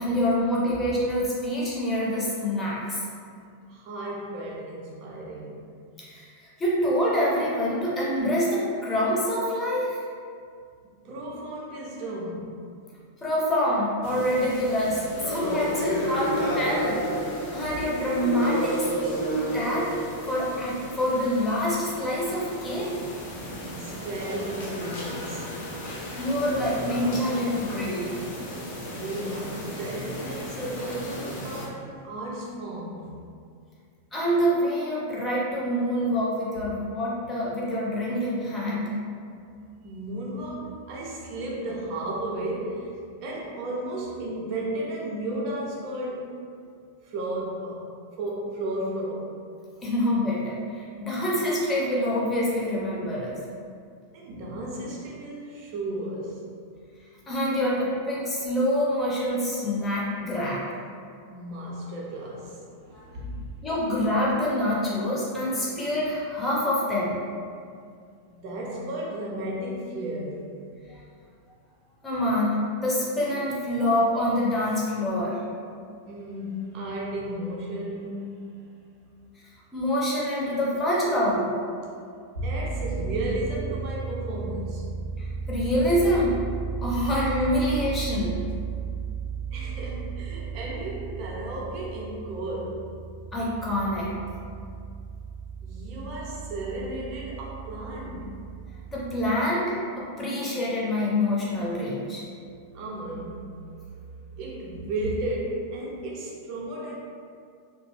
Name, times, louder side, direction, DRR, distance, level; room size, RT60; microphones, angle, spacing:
voice 1, 0.0-3.0 6.0-10.0 13.2-17.0 17.5-19.2 19.5-19.9 20.3-23.0 25.8-28.1 34.1-39.0 49.8-53.4 57.3-60.7 62.9-63.3 63.6-67.2 72.0-75.4 79.7-81.5 85.2-86.3 86.8-88.4 93.3-94.1 98.9-102.2, left 1 dB, 15° left, -6 dB, 0.8 m, -26 dB
voice 2, 3.7-5.8 10.8-12.6 15.2-15.6 23.7-25.6 28.8-33.2 39.8-42.9 43.2-46.3 47.0-47.9 48.2-49.4 54.1-56.4 61.3-63.5 68.3-70.4 76.0-78.5 82.4-84.9 86.9-87.1 89.5-92.9 95.6-98.4 102.7-103.5 103.8-106.9, right 1 dB, 40° right, -4 dB, 0.6 m, -34 dB
sound 1, 14.0-31.7, equal, 50° left, 0.6 m, -32 dB
sound 2, 82.3-99.1, right 5 dB, 90° left, 0.8 m, -34 dB
2.8 x 2.1 x 3.1 m, 2.3 s
figure-of-eight pair, 90°, 0 cm